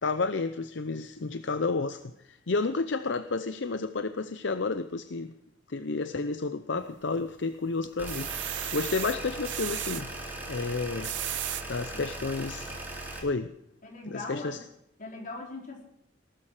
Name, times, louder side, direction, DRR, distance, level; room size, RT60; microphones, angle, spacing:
voice 1, 0.0-5.3 5.7-8.3 8.7-10.1 10.5-11.1 11.7-12.7 13.2-13.5 14.1-14.6, left 3 dB, 70° left, 11 dB, 0.7 m, -31 dB
sound 1, 6.8-7.4 7.8-10.0 10.8-11.6 12.3-12.4 12.7-12.8, right 14 dB, 70° right, 0.7 m, -35 dB
sound 2, 8.0-13.2, right 1 dB, 10° right, 3.9 m, -39 dB
voice 2, 13.8-14.6 15.0-15.8, left 2 dB, 45° left, -1 dB, 4.6 m, -40 dB
18.5 x 13.0 x 5.0 m, 0.79 s
head